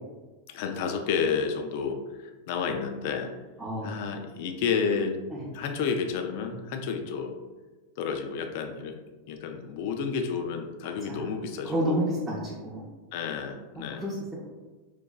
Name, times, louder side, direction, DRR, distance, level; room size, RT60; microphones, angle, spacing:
voice 1, 0.5-2.0 2.5-3.3 3.8-5.2 5.5-7.4 8.0-8.9 9.3-12.0 13.1-14.0, left 6 dB, 50° left, 5 dB, 0.3 m, -30 dB
voice 2, 3.6-3.9 5.3-5.4 11.1-11.2 11.6-12.8 13.8-14.4, right 1 dB, 10° right, -7 dB, 0.6 m, -30 dB
3.9 x 2.2 x 2.3 m, 1.2 s
figure-of-eight pair, 90°, 0 cm